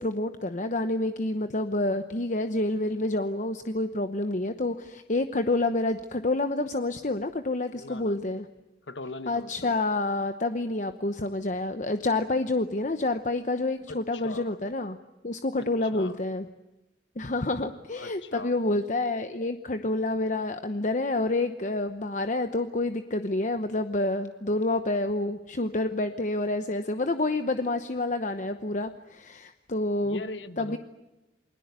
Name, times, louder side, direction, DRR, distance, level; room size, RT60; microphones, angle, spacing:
voice 1, 0.0-8.5 9.3-15.0 15.2-16.5 17.2-30.2 30.6-30.8, left 2 dB, 45° left, 9 dB, 0.9 m, -28 dB
voice 2, 7.7-8.2 8.9-9.8 13.9-14.6 15.6-16.2 18.0-18.5 30.0-30.8, left 3 dB, 90° left, 12 dB, 1.3 m, -40 dB
29.0 x 21.5 x 8.2 m, 0.99 s
head